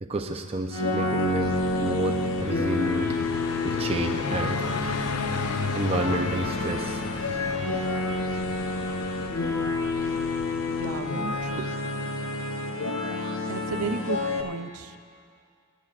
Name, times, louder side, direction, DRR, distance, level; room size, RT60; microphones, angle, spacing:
voice 1, 0.0-3.2 3.6-4.6 5.7-7.0, right 1 dB, 25° right, 4 dB, 0.5 m, -29 dB
sound 1, 0.7-14.4, left 2 dB, 60° left, 0.9 m, -29 dB
Car passing by, 1.2-11.8, left 5 dB, 90° left, 0.5 m, -35 dB
voice 2, 10.7-11.7 13.4-15.0, right 4 dB, 80° right, 8 dB, 0.6 m, -34 dB
26.5 x 10.0 x 2.5 m, 2.2 s
head